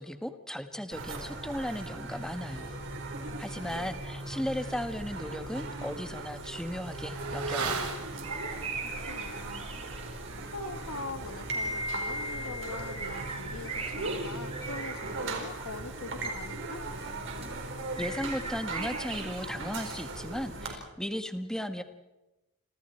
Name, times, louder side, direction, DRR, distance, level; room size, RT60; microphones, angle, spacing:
voice 1, 0.0-2.7 3.4-7.8 18.0-21.8, equal, 5° left, 8 dB, 1.5 m, -36 dB
sound 1, 0.9-20.7, right 2 dB, 60° right, 4.5 m, -38 dB
voice 2, 3.3-3.9 8.8-9.7 10.0-16.9, left 3 dB, 75° left, 11 dB, 1.5 m, -43 dB
Motorcycle / Accelerating revving vroom, 4.4-4.5 4.9-14.9 15.2-15.3, right 4 dB, 85° right, 3.7 m, -42 dB
sound 2, 7.2-19.6, right 5 dB, 25° right, 2.9 m, -43 dB
29.5 x 26.5 x 4.5 m, 0.99 s
head